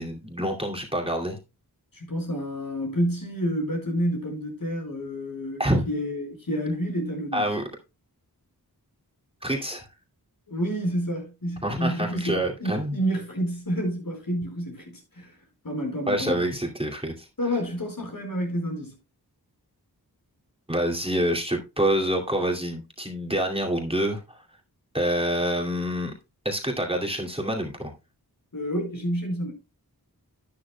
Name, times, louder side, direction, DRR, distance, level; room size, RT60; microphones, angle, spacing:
voice 1, 0.0-1.4 5.6-5.9 7.3-7.6 9.4-9.8 11.6-13.0 16.1-17.3 20.7-24.2 24.9-26.1 26.4-27.9, right 1 dB, 15° right, 2.4 m, -26 dB
voice 2, 1.9-7.4 10.5-15.3 15.6-16.5 17.4-19.0 28.5-29.5, equal, 60° left, 4.8 m, -29 dB
11.5 x 9.7 x 2.2 m
wide cardioid pair, 45°, 39 cm